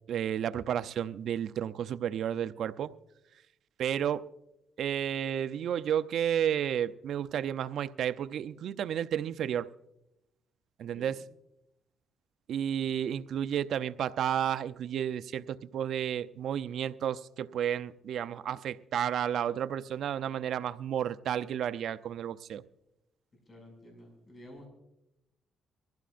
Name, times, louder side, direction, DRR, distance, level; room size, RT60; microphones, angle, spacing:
voice 1, 0.1-2.9 3.8-4.3 4.8-9.7 10.8-11.2 12.5-22.6, right 9 dB, 70° right, 13 dB, 0.5 m, -32 dB
voice 2, 23.5-24.7, left 1 dB, 35° left, 2 dB, 6.2 m, -51 dB
23.5 x 15.5 x 2.5 m, 0.87 s
cardioid pair, 90°, 0 cm